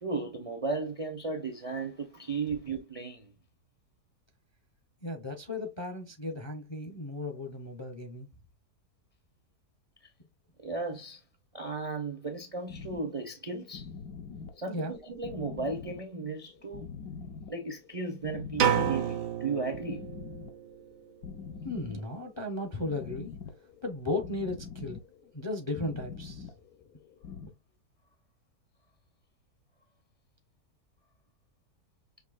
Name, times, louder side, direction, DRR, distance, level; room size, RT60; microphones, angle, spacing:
voice 1, 0.0-3.3 10.0-10.1 10.6-11.2 11.5-13.9 14.6-16.8 17.5-20.1, right 3 dB, 40° right, 0.5 m, -35 dB
voice 2, 5.0-8.3 14.7-14.9 21.6-23.4 23.8-25.0 25.3-26.5 27.4-27.5, left 2 dB, 30° left, 0.5 m, -35 dB
sound 1, 12.7-27.5, left 5 dB, 70° left, 1.2 m, -45 dB
sound 2, 18.6-20.5, right 8 dB, 80° right, 1.5 m, -29 dB
6.4 x 2.8 x 2.4 m
omnidirectional pair, 1.7 m